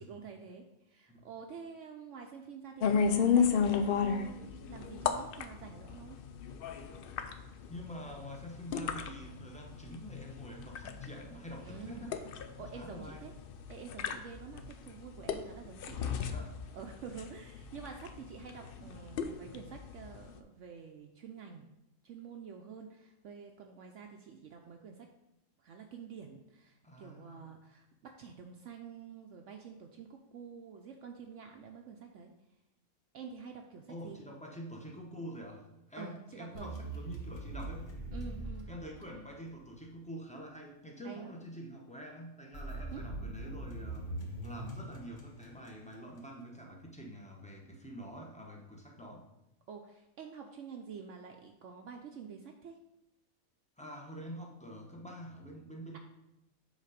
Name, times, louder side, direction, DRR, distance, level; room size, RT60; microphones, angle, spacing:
voice 1, 0.0-6.2 11.6-12.1 12.6-13.3 13.7-16.1 16.7-21.7 22.0-25.1 25.6-32.3 33.1-34.2 36.0-36.7 38.1-38.7 41.0-41.3 42.9-43.1 49.7-52.8 55.9-56.0, right 6 dB, 65° right, 3 dB, 0.9 m, -48 dB
sound 1, 2.8-20.4, left 6 dB, 70° left, 0.5 m, -34 dB
voice 2, 7.7-12.2 12.6-13.2 15.2-15.3 16.2-16.5 18.5-18.9 26.8-27.5 33.9-37.9 38.7-49.3 53.8-56.0, equal, 5° left, 0 dB, 0.7 m, -47 dB
sound 2, 36.5-39.5 42.5-46.0, right 2 dB, 35° left, 1.2 m, -42 dB
7.4 x 4.0 x 5.0 m, 0.89 s
omnidirectional pair, 1.5 m